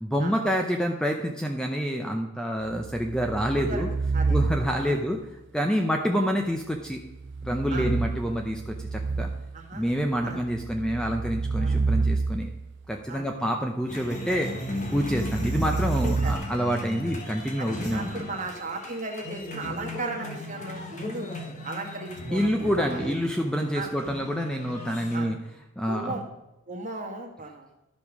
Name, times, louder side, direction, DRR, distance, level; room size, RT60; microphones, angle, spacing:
voice 1, 0.0-3.9 4.3-5.2 5.5-7.0 7.4-9.3 9.7-12.5 12.9-14.5 14.9-18.3 22.3-25.4 25.8-26.2, equal, 5° left, 3 dB, 0.7 m, -27 dB
sound 1, 2.7-5.0 7.1-9.7 10.3-12.8 14.8-16.4, right 4 dB, 55° right, 0.5 m, -29 dB
voice 2, 3.5-3.8 4.1-4.4 4.8-5.0 7.7-7.9 9.5-9.9 10.2-10.4 11.6-11.8 13.1-13.3 16.0-16.3 17.6-21.3 21.6-23.2 23.7-23.9 25.1-25.3 25.9-26.2 26.7-27.7, right 2 dB, 35° right, 1 dB, 1.6 m, -36 dB
sound 2, 13.9-25.2, left 1 dB, 35° left, 1.3 m, -36 dB
12.0 x 5.3 x 6.0 m, 0.96 s
head